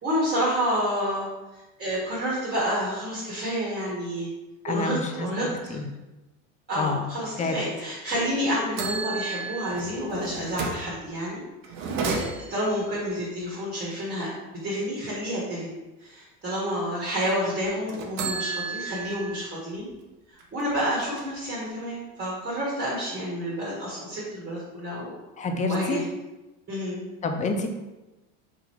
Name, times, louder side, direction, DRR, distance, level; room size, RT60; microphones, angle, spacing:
voice 1, 0.0-4.3 4.7-5.8 6.7-11.4 11.8-14.3 14.6-19.9 20.5-25.1 25.7-26.0 26.7-27.0, equal, 25° right, -7 dB, 1.5 m, -29 dB
voice 2, 4.6-5.9 6.8-7.0 7.4-7.6 25.4-26.0 27.2-27.7, left 3 dB, 20° left, 5 dB, 0.5 m, -28 dB
sound 1, 8.1-8.3 8.8-10.9 11.6-12.7 17.9-19.5 19.9-20.0 20.4-21.4, right 4 dB, 60° right, 0.9 m, -32 dB
4.0 x 3.0 x 4.4 m, 1.0 s
supercardioid pair, 120°, 36 cm